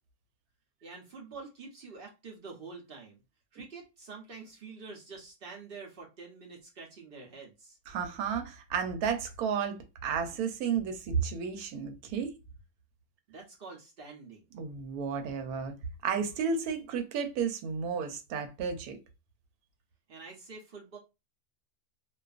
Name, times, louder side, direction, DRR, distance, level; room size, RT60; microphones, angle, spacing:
voice 1, 0.8-3.2 3.5-7.8 13.3-14.4 20.1-21.0, right 4 dB, 55° right, 0.7 m, -47 dB
voice 2, 7.9-12.3 14.5-15.7 16.0-19.0, right 6 dB, 90° right, 1.1 m, -32 dB
2.5 x 2.3 x 2.3 m
omnidirectional pair, 1.5 m